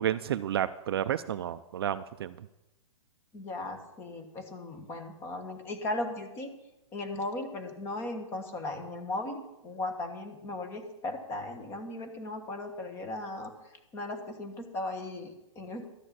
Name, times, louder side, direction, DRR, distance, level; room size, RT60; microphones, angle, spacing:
voice 1, 0.0-2.4, right 10 dB, 45° right, 13 dB, 0.4 m, -31 dB
voice 2, 3.3-6.5 6.9-13.5 13.9-15.9, left 2 dB, 15° left, 6 dB, 1.2 m, -37 dB
12.0 x 6.5 x 8.4 m, 0.94 s
hypercardioid pair, 170°, 17 cm